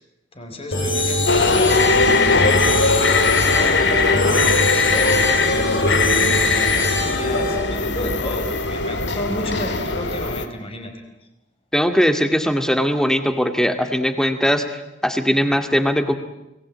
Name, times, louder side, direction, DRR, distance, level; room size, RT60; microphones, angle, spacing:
voice 1, 0.3-10.9, left 1 dB, 30° left, 5 dB, 5.1 m, -32 dB
sound 1, 0.7-7.6, left 1 dB, 90° left, 7.6 m, -24 dB
sound 2, 1.3-10.5, left 3 dB, 70° left, 2.1 m, -19 dB
voice 2, 11.7-14.6 15.0-16.2, equal, 5° left, 7 dB, 2.1 m, -19 dB
29.5 x 20.5 x 8.8 m, 0.93 s
head